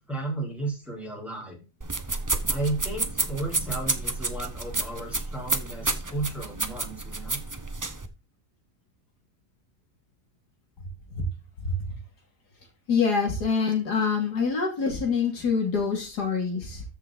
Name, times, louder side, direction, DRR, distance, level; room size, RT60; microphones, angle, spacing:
voice 1, 0.1-1.6 2.5-7.4, right 2 dB, ahead, -3 dB, 4.0 m, -33 dB
sound 1, 1.8-8.1, right 3 dB, 20° right, 0.5 m, -30 dB
voice 2, 12.9-16.8, left 5 dB, 90° left, 2 dB, 3.0 m, -25 dB
13.5 x 5.9 x 4.0 m, 0.30 s
omnidirectional pair, 1.7 m